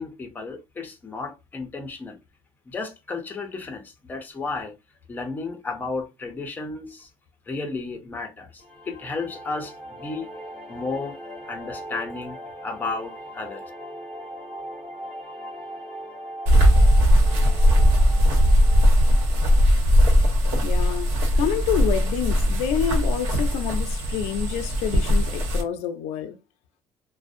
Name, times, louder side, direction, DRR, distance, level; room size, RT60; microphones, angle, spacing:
voice 1, 0.0-2.2 2.7-4.7 5.1-7.1 7.5-10.3 10.7-11.2 11.5-12.4 12.6-13.7, left 3 dB, 15° left, 0.5 m, -33 dB
sound 1, 8.6-19.7, equal, 60° right, 1.4 m, -39 dB
sound 2, 16.5-25.6, equal, 80° right, 1.0 m, -19 dB
voice 2, 20.6-26.4, left 9 dB, 80° left, 0.4 m, -28 dB
2.5 x 2.0 x 2.4 m
cardioid pair, 140°, 11 cm